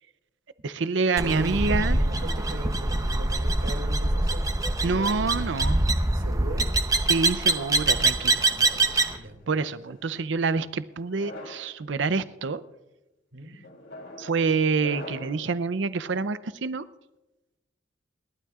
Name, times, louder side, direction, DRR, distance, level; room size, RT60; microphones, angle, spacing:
voice 1, 0.6-2.0 4.8-5.8 7.1-8.5 8.9-9.2 9.5-12.6 14.2-16.9, right 4 dB, 70° right, 15 dB, 0.6 m, -27 dB
sound 1, 1.2-9.2, right 2 dB, 20° right, 0.7 m, -24 dB
voice 2, 1.2-5.3 6.1-6.7 8.5-8.7 9.2-9.4 13.3-13.5, right 1 dB, 90° right, 4 dB, 2.5 m, -39 dB
sound 2, 7.6-9.0 9.8-10.2 11.0-11.7 12.4-12.7 13.6-15.5, left 2 dB, 85° left, 3.2 m, -44 dB
29.0 x 12.0 x 2.4 m, 1.1 s
head